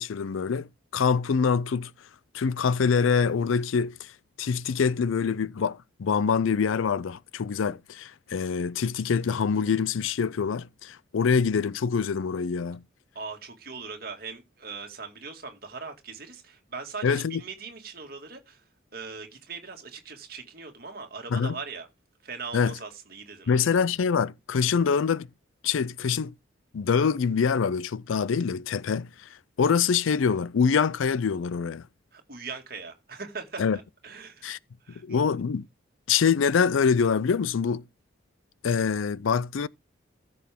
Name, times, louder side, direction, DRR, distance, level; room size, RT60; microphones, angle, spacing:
voice 1, 0.0-1.9 2.3-4.1 4.4-12.8 17.0-17.4 21.3-21.6 22.5-22.7 23.5-25.3 25.6-26.3 26.7-29.3 29.6-31.8 33.6-33.8 34.4-34.6 35.0-35.7 36.1-37.8 38.6-39.7, left 6 dB, 85° left, 0.4 m, -25 dB
voice 2, 13.1-18.6 18.9-21.9 22.2-23.8 32.1-34.5 34.8-35.2, right 4 dB, 50° right, 2.1 m, -40 dB
14.5 x 6.2 x 3.6 m
head